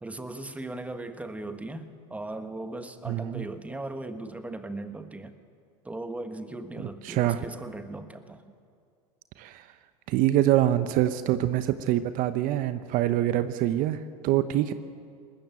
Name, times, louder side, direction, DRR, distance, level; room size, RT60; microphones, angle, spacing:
voice 1, 0.0-5.3 5.8-8.4, right 2 dB, 10° right, 9 dB, 1.4 m, -38 dB
voice 2, 3.1-3.4 7.0-7.4 9.4-9.7 10.1-14.7, right 13 dB, 50° right, 12 dB, 0.9 m, -25 dB
20.0 x 14.5 x 9.1 m, 2.2 s
hypercardioid pair, 100°, 18 cm